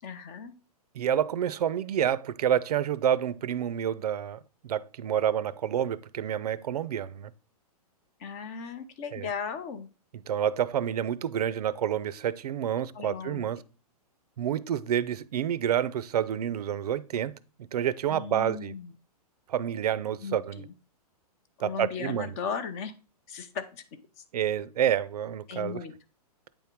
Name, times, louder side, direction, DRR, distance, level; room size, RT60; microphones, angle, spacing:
voice 1, 0.0-0.5 8.2-9.9 12.9-13.5 18.1-18.9 20.2-20.7 21.6-22.9 23.3-23.8 25.5-25.9, left 6 dB, 25° left, 0.5 m, -37 dB
voice 2, 0.9-7.3 9.1-9.3 10.3-13.6 14.4-17.3 17.7-18.7 19.5-20.6 21.6-22.3 24.3-25.8, right 10 dB, 80° right, 0.5 m, -28 dB
8.9 x 3.6 x 4.4 m
hypercardioid pair, 170°, 20 cm